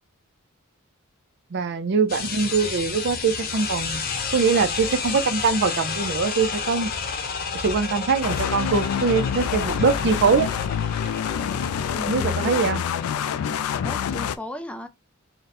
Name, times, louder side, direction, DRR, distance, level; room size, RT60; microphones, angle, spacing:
voice 1, 1.5-4.0 4.3-6.9 7.5-10.5 12.1-12.8, right 5 dB, 55° right, 0.5 m, -22 dB
sound 1, 2.1-14.1, left 5 dB, 45° left, 0.8 m, -31 dB
sound 2, 8.2-14.4, left 8 dB, 75° left, 0.3 m, -27 dB
voice 2, 11.9-12.6 13.8-14.9, left 1 dB, 5° left, 0.4 m, -35 dB
3.8 x 2.1 x 4.1 m
head